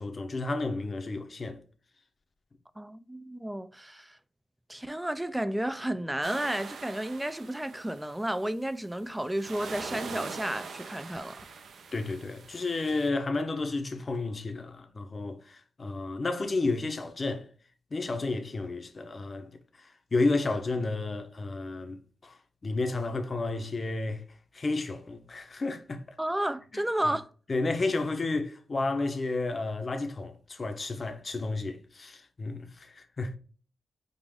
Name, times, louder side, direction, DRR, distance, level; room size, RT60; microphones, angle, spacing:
voice 1, 0.0-1.6 11.9-17.5 17.9-19.5 19.8-22.4 22.6-24.2 24.5-26.0 26.7-26.8 27.5-33.4, left 3 dB, 35° left, 0.7 m, -31 dB
voice 2, 2.8-4.2 4.7-11.5 26.2-27.3, right 1 dB, 10° right, 0.3 m, -32 dB
sound 1, 6.2-8.4 9.0-13.1, right 5 dB, 70° right, 0.6 m, -43 dB
5.2 x 2.5 x 3.4 m
wide cardioid pair, 115°, 0 cm